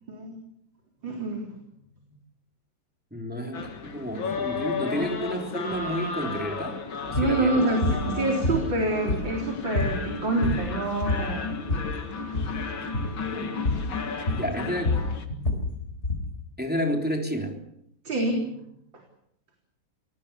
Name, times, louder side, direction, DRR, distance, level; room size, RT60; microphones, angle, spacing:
voice 1, 0.1-0.4 1.0-1.5 7.2-11.6 13.2-14.7 18.0-18.6, right 2 dB, 70° right, 1 dB, 4.5 m, -28 dB
voice 2, 3.1-6.8 7.1-7.7 13.3-13.5 14.3-15.0 16.6-17.6, equal, 5° right, 2 dB, 3.4 m, -30 dB
sound 1, 3.5-15.2, left 5 dB, 85° left, 2.8 m, -34 dB
sound 2, 7.1-7.4 7.8-8.0 8.4-9.4 9.7-10.0 10.3-10.7 11.0-11.9 12.3-12.6 12.9-13.2 13.6-13.9 14.3-16.3, left 2 dB, 35° left, 4.9 m, -27 dB
27.5 x 19.5 x 7.1 m, 0.74 s
omnidirectional pair, 2.1 m